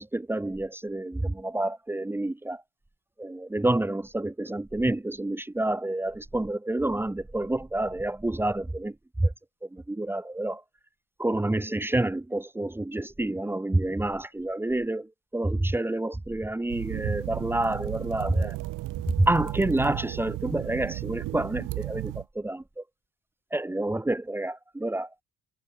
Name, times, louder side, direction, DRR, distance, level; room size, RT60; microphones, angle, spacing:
voice 1, 0.0-2.6 3.2-9.3 9.6-10.6 11.2-15.1 15.3-18.6 19.2-22.8 23.5-25.1, right 1 dB, 5° right, 3.0 m, -28 dB
sound 1, 16.7-22.2, right 18 dB, 70° right, 2.0 m, -34 dB
cardioid pair, 165°, 33 cm